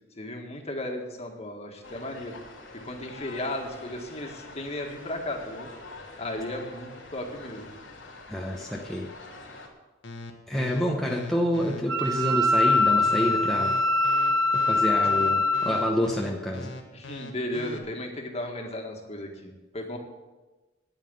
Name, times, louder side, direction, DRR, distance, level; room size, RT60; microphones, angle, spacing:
voice 1, 0.2-2.4 2.8-5.7 6.2-7.7 16.9-20.0, left 1 dB, 35° left, 2 dB, 1.8 m, -35 dB
sound 1, 1.8-9.7, left 3 dB, 85° left, 2.8 m, -46 dB
voice 2, 8.3-9.1 10.5-13.8 14.5-16.7, equal, ahead, -2 dB, 1.0 m, -28 dB
sound 2, 10.0-17.8, left 1 dB, 70° left, 1.5 m, -40 dB
Wind instrument woodwind instrument, 11.9-15.9, left 2 dB, 85° right, 0.9 m, -23 dB
9.7 x 9.1 x 8.0 m, 1.2 s
head